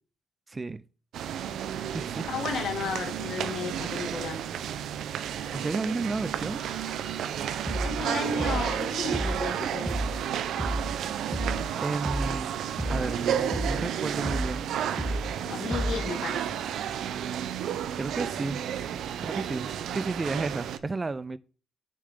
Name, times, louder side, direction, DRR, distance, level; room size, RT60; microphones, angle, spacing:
voice 1, 0.5-0.8 1.9-2.2 5.5-6.6 11.8-12.5 12.9-14.6 18.0-18.6 19.2-21.4, right 3 dB, 25° right, 0.5 m, -32 dB
sound 1, 1.1-20.8, right 9 dB, 75° right, 0.7 m, -32 dB
voice 2, 2.3-4.4 7.8-10.0 15.4-16.6, left 5 dB, 70° left, 2.2 m, -33 dB
sound 2, 7.7-8.0 8.4-8.8 9.1-9.5 9.9-10.2 10.6-11.0 11.3-11.7 12.1-12.4 12.8-13.2 13.5-13.9 14.3-14.6 15.0-15.4 15.7-16.1, equal, ahead, 0.8 m, -31 dB
9.2 x 6.5 x 3.8 m
cardioid pair, 90°, 0 cm